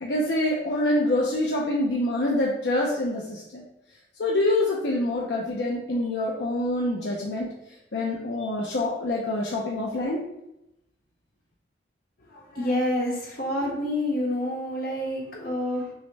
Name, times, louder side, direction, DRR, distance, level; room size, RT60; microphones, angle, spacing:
voice 1, 0.0-3.7 4.2-7.5 7.9-10.2, left 1 dB, 75° left, -2 dB, 0.5 m, -26 dB
voice 2, 12.3-15.9, left 1 dB, 55° left, -2 dB, 1.1 m, -28 dB
6.1 x 2.1 x 3.2 m, 0.88 s
head